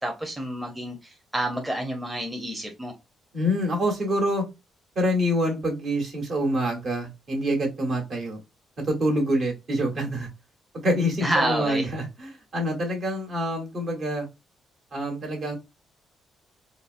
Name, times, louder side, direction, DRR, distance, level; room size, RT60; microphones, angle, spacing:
voice 1, 0.0-2.9 11.2-11.9, right 1 dB, 10° right, 0.7 m, -28 dB
voice 2, 3.3-4.4 4.9-8.4 8.8-10.3 10.8-14.3 14.9-15.6, equal, 55° right, 1.3 m, -26 dB
3.8 x 2.0 x 2.5 m
cardioid pair, 90°, 0 cm